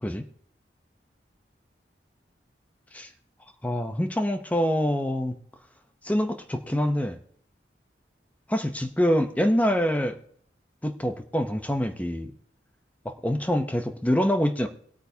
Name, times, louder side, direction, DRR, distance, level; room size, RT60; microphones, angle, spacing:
voice 1, 3.6-5.4 6.0-7.2 8.5-10.2 10.8-12.3 13.0-14.7, equal, 10° left, 7 dB, 0.7 m, -25 dB
22.0 x 8.6 x 2.8 m, 0.63 s
head